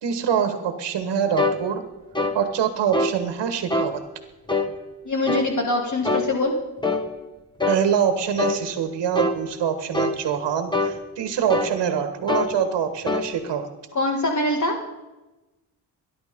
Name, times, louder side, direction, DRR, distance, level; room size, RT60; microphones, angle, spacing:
voice 1, 0.0-1.8 2.3-4.0 7.7-13.7, right 8 dB, 75° right, 7 dB, 1.5 m, -24 dB
sound 1, 1.4-1.6 2.1-2.4 2.9-3.2 3.7-3.9 4.5-4.7 5.3-5.5 6.0-6.3 6.8-7.1 7.6-7.8 8.4-8.6 9.1-9.4 9.9-10.2 10.7-11.0 11.5-11.8 12.3-12.5 13.1-13.3, left 2 dB, 10° left, 1.4 m, -23 dB
voice 2, 5.1-6.5 13.9-14.8, left 2 dB, 45° left, 2 dB, 1.8 m, -23 dB
20.0 x 11.0 x 5.2 m, 1.1 s
cardioid pair, 105°, 43 cm